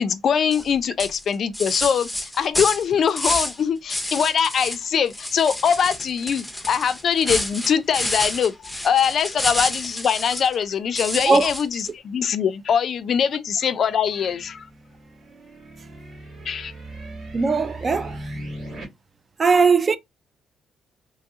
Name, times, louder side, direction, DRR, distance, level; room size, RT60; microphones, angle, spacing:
voice 1, 0.0-14.7 16.5-16.7, left 7 dB, 60° left, 0.3 m, -22 dB
sound 1, 0.5-0.7 1.0-3.6 3.9-4.8 5.1-10.5 11.0-11.9, left 1 dB, 5° left, 0.6 m, -29 dB
sound 2, 13.9-18.8, right 1 dB, 75° right, 1.7 m, -39 dB
voice 2, 17.3-18.3 19.4-20.0, right 4 dB, 35° right, 0.4 m, -19 dB
3.0 x 2.3 x 2.7 m
cardioid pair, 90°, 0 cm